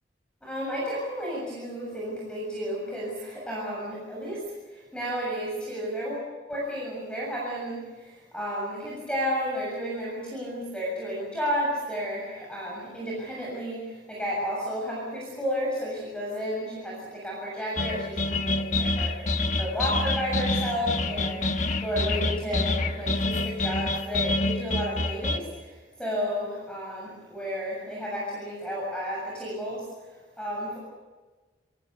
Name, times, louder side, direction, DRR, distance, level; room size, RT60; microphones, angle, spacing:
voice 1, 0.4-4.4 4.7-29.8 30.4-30.8, equal, 5° left, -5 dB, 7.1 m, -32 dB
sound 1, 17.7-25.4, left 2 dB, 40° left, 1.2 m, -27 dB
28.0 x 21.5 x 6.9 m, 1.3 s
head